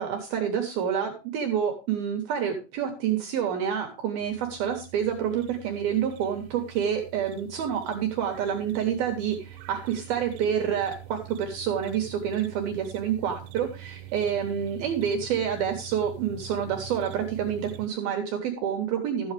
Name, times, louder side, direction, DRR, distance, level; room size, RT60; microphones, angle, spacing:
voice 1, 0.0-19.3, right 8 dB, 70° right, 4 dB, 2.4 m, -28 dB
sound 1, 4.2-17.9, right 13 dB, 85° right, 3.3 m, -44 dB
13.0 x 8.6 x 3.3 m, 0.31 s
omnidirectional pair, 5.7 m